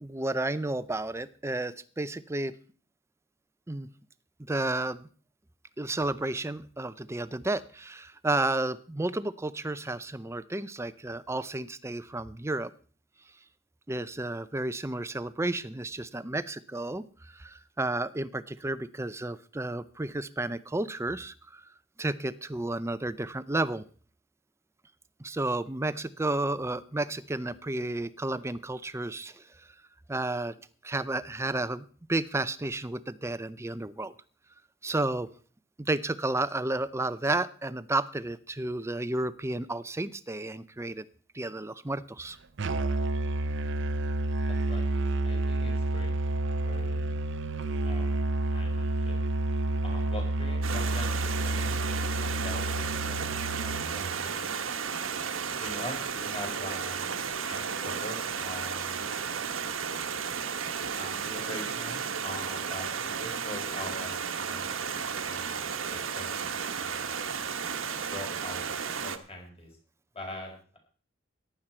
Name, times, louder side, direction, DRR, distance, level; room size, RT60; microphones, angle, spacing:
voice 1, 0.0-2.6 3.7-3.9 4.4-5.1 5.8-12.7 13.9-21.6 22.0-23.8 25.2-29.4 30.1-30.5 30.8-34.1 34.8-35.3 35.8-41.0 41.3-42.4, right 2 dB, 15° right, 15 dB, 0.6 m, -32 dB
Musical instrument, 42.6-54.3, right 2 dB, 65° right, 0.7 m, -29 dB
voice 2, 44.5-47.2 47.8-48.2 48.5-49.2 49.8-51.2 51.4-54.6 55.5-57.1 57.5-59.1 60.9-65.6 65.9-67.4 68.1-68.6 69.0-69.7 70.1-70.8, left 1 dB, 30° left, 1 dB, 4.8 m, -43 dB
Stream, 50.6-69.2, right 6 dB, 85° right, 1.3 m, -33 dB
15.0 x 11.5 x 4.4 m, 0.41 s
head